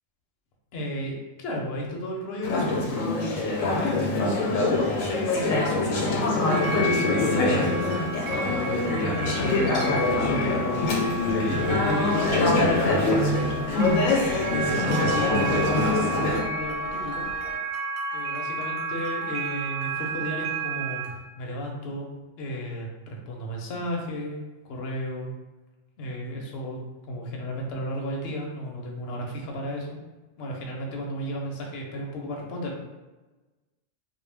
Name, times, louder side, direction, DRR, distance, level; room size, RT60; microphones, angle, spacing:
voice 1, 0.7-3.0 3.6-5.6 5.9-10.7 11.4-12.6 13.4-13.8 14.5-17.2 18.1-21.1 21.4-22.1 22.4-25.3 26.0-26.8 27.1-30.0 30.4-33.0, equal, 60° left, -1 dB, 0.7 m, -33 dB
Conversation / Chatter, 2.4-16.4, left 2 dB, 85° left, 1.0 m, -24 dB
sound 1, 6.5-21.1, right 3 dB, 70° right, 0.8 m, -32 dB
sound 2, 10.8-17.6, equal, 35° right, 0.7 m, -41 dB
2.2 x 2.1 x 3.2 m, 1.2 s
omnidirectional pair, 1.3 m